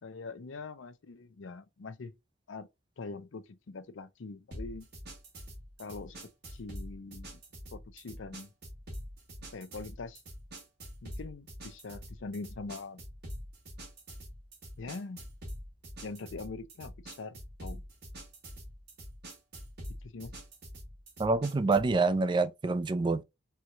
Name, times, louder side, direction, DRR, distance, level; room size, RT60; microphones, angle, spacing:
voice 1, 0.0-2.1 2.5-2.7 3.0-4.9 5.8-6.2 6.5-7.4 7.7-8.5 9.5-10.2 11.0-13.0 14.8-15.2 16.0-17.8 20.0-20.3, left 3 dB, 75° left, 0.5 m, -43 dB
sound 1, 4.5-21.9, equal, 60° right, 1.4 m, -45 dB
voice 2, 21.2-23.2, right 3 dB, 25° right, 0.3 m, -27 dB
4.4 x 2.3 x 2.6 m
head